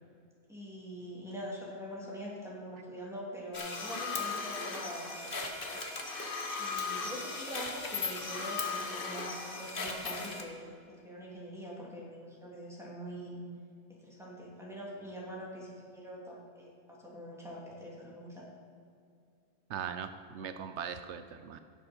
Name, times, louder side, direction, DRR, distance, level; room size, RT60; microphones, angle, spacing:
voice 1, 0.5-5.9 6.6-13.4 13.9-18.4, equal, ahead, -5 dB, 2.8 m, -44 dB
sound 1, 3.5-10.4, left 4 dB, 55° left, 1.4 m, -37 dB
voice 2, 19.7-21.6, right 7 dB, 80° right, 9 dB, 0.9 m, -40 dB
16.5 x 7.6 x 4.4 m, 2.4 s
omnidirectional pair, 1.2 m